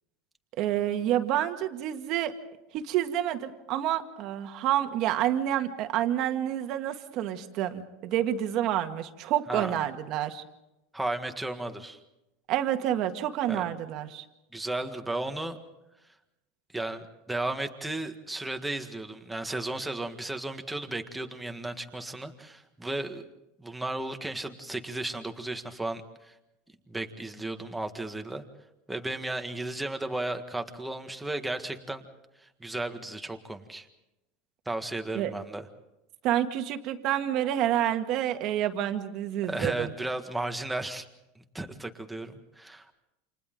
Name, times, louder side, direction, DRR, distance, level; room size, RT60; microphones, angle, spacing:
voice 1, 0.6-2.3 2.7-10.4 12.5-14.2 35.1-35.3 36.2-39.9, right 11 dB, 45° right, 6 dB, 1.9 m, -28 dB
voice 2, 10.9-12.0 13.5-13.6 14.5-15.6 16.7-23.2 23.6-26.3 26.9-28.4 28.9-32.0 32.4-33.9 34.7-35.6 39.5-41.1 41.4-42.9, right 2 dB, 5° right, 5 dB, 1.7 m, -34 dB
29.5 x 28.0 x 3.9 m, 0.93 s
supercardioid pair, 150°, 0 cm